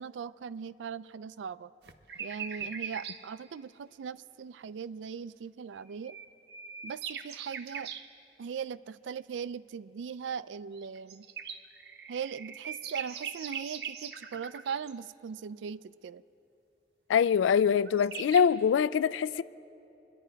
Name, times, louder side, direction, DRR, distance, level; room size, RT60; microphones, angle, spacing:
voice 1, 0.0-1.7 2.2-6.2 6.8-7.9 8.4-11.3 12.1-16.2, right 6 dB, 80° right, 0.4 m, -39 dB
sound 1, 1.8-3.2 5.8-8.1 10.7-14.9 17.6-17.7 17.8-18.4, right 7 dB, 60° right, 0.7 m, -41 dB
voice 2, 17.1-19.4, left 7 dB, 85° left, 0.3 m, -24 dB
26.5 x 11.0 x 4.5 m
head